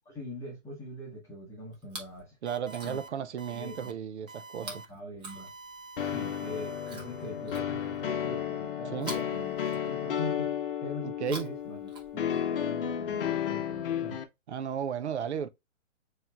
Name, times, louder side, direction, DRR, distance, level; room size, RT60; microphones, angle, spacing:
voice 1, 0.0-2.4 2.8-3.0 3.5-4.0 4.6-5.5 6.0-9.5 9.8-10.5 10.8-14.2, left 1 dB, 10° left, 1.1 m, -42 dB
Chewing mastication, 1.7-2.2 2.6-3.2 4.6-5.9 6.8-8.1 9.0-10.2 11.1-12.5 13.4-13.5, right 3 dB, 15° right, 0.9 m, -46 dB
voice 2, 2.4-4.8 8.9-9.1 11.0-11.5 14.5-15.5, right 8 dB, 60° right, 0.7 m, -34 dB
sound 1, 2.5-3.1 3.4-3.9 4.3-4.9 5.3-7.6, right 4 dB, 85° right, 1.2 m, -48 dB
sound 2, 6.0-14.2, left 9 dB, 45° left, 0.8 m, -33 dB
6.8 x 3.1 x 2.3 m
hypercardioid pair, 140°, 39 cm